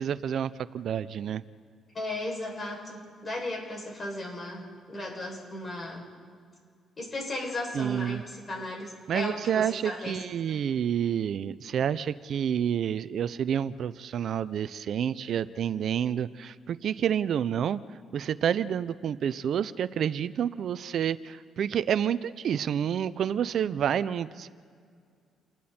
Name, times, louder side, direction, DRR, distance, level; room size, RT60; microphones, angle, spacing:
voice 1, 0.0-1.4 7.7-8.2 9.1-17.8 18.1-24.5, right 9 dB, 65° right, 15 dB, 0.6 m, -29 dB
voice 2, 1.9-6.0 7.0-10.2, left 1 dB, 35° left, -1 dB, 6.7 m, -36 dB
29.0 x 20.5 x 4.4 m, 2.2 s
cardioid pair, 90°, 0 cm